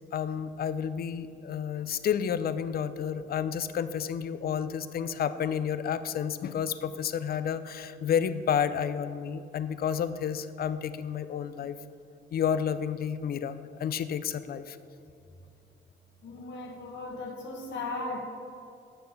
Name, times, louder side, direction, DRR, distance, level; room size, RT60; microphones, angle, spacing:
voice 1, 0.1-11.8 12.3-14.8, left 8 dB, 50° left, 13 dB, 0.5 m, -30 dB
voice 2, 16.2-18.2, left 2 dB, 65° left, 0 dB, 1.6 m, -37 dB
8.9 x 6.6 x 4.0 m, 2.6 s
cardioid pair, 90°, 20 cm